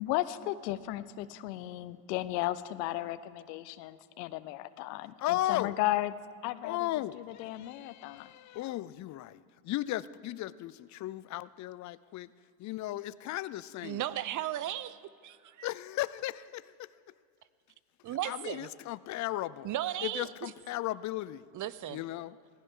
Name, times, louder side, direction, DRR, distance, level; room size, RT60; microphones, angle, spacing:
voice 1, 0.0-6.1 6.4-6.8 7.4-8.3, left 16 dB, 90° left, 15 dB, 0.7 m, -34 dB
voice 2, 5.2-5.8 6.6-12.3 12.6-14.0 15.6-16.9 18.1-19.7 20.0-21.5 21.9-22.4, left 15 dB, 40° left, 18 dB, 0.4 m, -36 dB
voice 3, 13.8-15.0 15.2-15.7 18.0-18.7 19.6-20.3 21.5-22.0, right 12 dB, 40° right, 17 dB, 0.6 m, -35 dB
18.5 x 15.5 x 3.7 m, 2.3 s
supercardioid pair, 95°, 47 cm